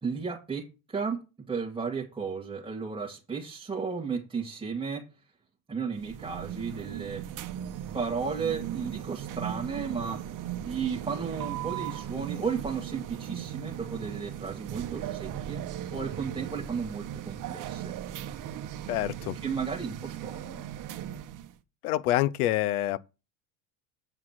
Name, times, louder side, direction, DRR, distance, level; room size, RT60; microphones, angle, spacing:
voice 1, 0.0-1.2 1.5-5.1 5.7-7.3 7.9-10.2 10.6-15.6 15.9-17.9 19.3-20.6, right 5 dB, 10° right, 1.7 m, -34 dB
sound 1, 5.9-21.6, right 11 dB, 45° right, 1.1 m, -38 dB
voice 2, 18.9-19.3 21.8-23.0, left 14 dB, 85° left, 0.7 m, -26 dB
8.0 x 4.9 x 7.2 m
supercardioid pair, 95°, 43 cm